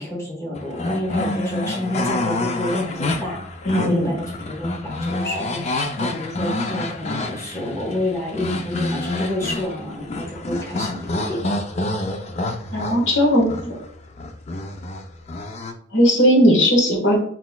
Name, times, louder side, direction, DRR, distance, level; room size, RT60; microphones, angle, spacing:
voice 1, 0.0-3.4 3.7-5.6 6.0-11.4, left 1 dB, 15° left, -3 dB, 1.2 m, -28 dB
sound 1, 0.6-15.7, left 2 dB, 35° left, 0.4 m, -28 dB
voice 2, 3.6-4.1 12.7-13.7 15.9-17.2, equal, 70° left, -1 dB, 1.4 m, -17 dB
4.3 x 4.1 x 2.2 m, 0.62 s
head